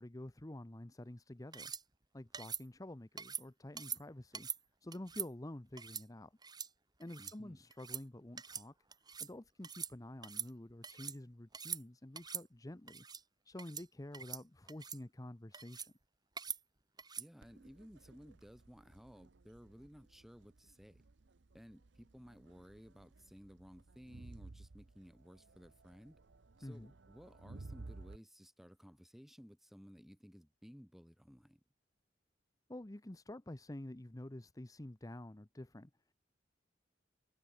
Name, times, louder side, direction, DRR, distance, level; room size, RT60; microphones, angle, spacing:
voice 1, 0.0-1.7 2.1-4.5 4.8-6.3 7.0-8.7 9.2-13.0 13.4-15.9 26.6-26.9 32.7-35.9, left 1 dB, 20° left, 0.9 m, -49 dB
sound 1, 1.5-1.8 2.3-2.6 3.2-3.4 3.8-4.0 4.3-4.6 4.9-5.3 5.8-6.0 6.4-6.7 7.0-7.3 7.7-8.0 8.4-8.7 8.9-9.3 9.6-9.9 10.2-11.2 11.5-11.8 12.2-12.4 12.9-13.2 13.6-13.9 14.1-14.4 14.7-15.0 15.5-15.9 16.4-16.6 17.0-17.3, right 7 dB, 25° right, 1.7 m, -43 dB
voice 2, 7.2-7.7 17.2-21.0 21.5-26.2 26.6-31.6, equal, ahead, 5.4 m, -57 dB
Crowd, 17.4-28.2, right 2 dB, 70° right, 0.8 m, -56 dB
head